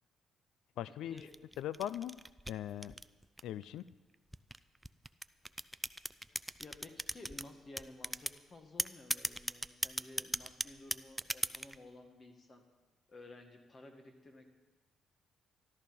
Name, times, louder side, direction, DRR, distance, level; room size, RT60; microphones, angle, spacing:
voice 1, 0.8-1.3 1.6-2.2 2.5-2.9 3.4-3.9, left 11 dB, 85° left, 17 dB, 0.4 m, -40 dB
sound 1, 1.2-3.6 4.3-7.5 7.8-8.4 8.8-11.8, right 1 dB, 5° right, 0.4 m, -37 dB
voice 2, 6.6-12.6 13.1-14.5, left 2 dB, 40° left, 4 dB, 1.8 m, -54 dB
13.5 x 12.5 x 5.4 m, 1.2 s
cardioid pair, 90°, 0 cm